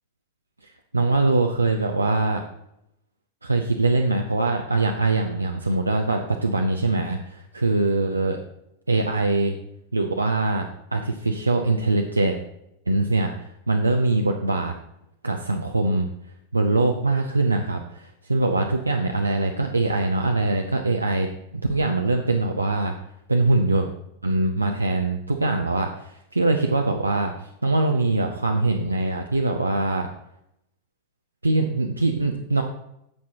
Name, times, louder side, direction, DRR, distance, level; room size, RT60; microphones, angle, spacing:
voice 1, 0.9-2.4 3.4-8.4 8.9-9.6 9.9-10.7 10.9-12.4 12.9-14.7 15.2-16.1 16.5-23.0 23.3-23.9 24.2-30.1 31.4-32.6, right 2 dB, 80° right, 3 dB, 0.6 m, -23 dB
9.4 x 7.5 x 2.9 m, 0.79 s
figure-of-eight pair, 90°, 0 cm